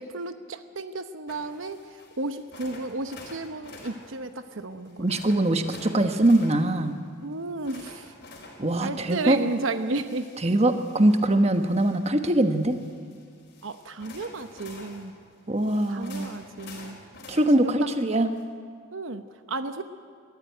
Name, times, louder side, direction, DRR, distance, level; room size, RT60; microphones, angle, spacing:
voice 1, 0.0-5.1 7.2-8.1 8.8-10.3 13.6-15.1 15.9-17.0 17.5-17.9 18.9-19.8, right 3 dB, 75° right, 9 dB, 0.9 m, -33 dB
sound 1, 1.3-18.4, left 2 dB, 60° left, 4.3 m, -49 dB
voice 2, 5.0-7.0 8.6-9.4 10.4-12.8 15.5-16.3 17.3-18.3, right 1 dB, 30° right, 7 dB, 1.2 m, -22 dB
22.5 x 14.0 x 9.3 m, 2.1 s
head